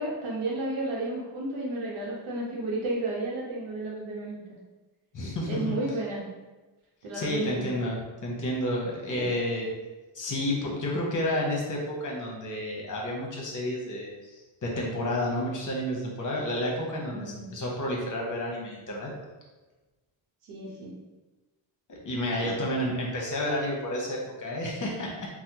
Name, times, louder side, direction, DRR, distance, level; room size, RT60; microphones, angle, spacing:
voice 1, 0.0-4.4 5.5-6.2 7.0-7.7 9.1-9.3 17.0-17.5 20.5-20.9 22.4-22.6, right 2 dB, 90° right, -3 dB, 0.8 m, -32 dB
voice 2, 5.1-5.8 7.1-9.7 10.1-19.1 21.9-25.3, left 1 dB, 40° left, -2 dB, 0.8 m, -30 dB
3.3 x 2.1 x 2.8 m, 1.2 s
cardioid pair, 110°, 48 cm